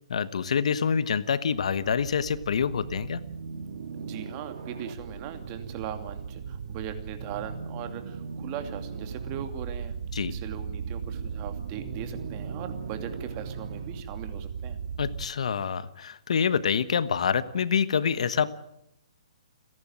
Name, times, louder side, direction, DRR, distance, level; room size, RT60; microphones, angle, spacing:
voice 1, 0.1-3.2 10.1-10.3 15.0-18.5, left 7 dB, 70° left, 15 dB, 1.2 m, -26 dB
sound 1, 1.5-15.3, right 6 dB, 60° right, 1.7 m, -37 dB
voice 2, 4.0-9.9 10.3-14.8, right 9 dB, 30° right, 7 dB, 2.6 m, -39 dB
29.5 x 11.0 x 8.8 m, 0.80 s
hypercardioid pair, 145°, 4 cm